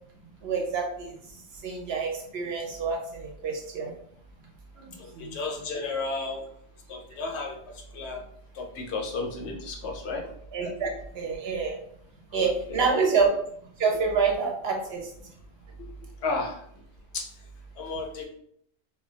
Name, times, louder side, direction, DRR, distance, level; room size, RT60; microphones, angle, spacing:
voice 1, 0.4-1.1 1.6-3.9 4.8-5.3 10.5-10.9 11.1-11.8 12.3-13.3 13.8-15.1, right 5 dB, 65° right, 1 dB, 0.7 m, -27 dB
voice 2, 5.0-6.4 6.9-8.2 8.5-10.3 10.8-10.9 12.3-12.9 15.8-15.9 16.2-16.6 17.1-17.3 17.8-18.3, left 3 dB, 70° left, 2 dB, 0.8 m, -33 dB
2.2 x 2.1 x 3.7 m, 0.67 s
omnidirectional pair, 1.2 m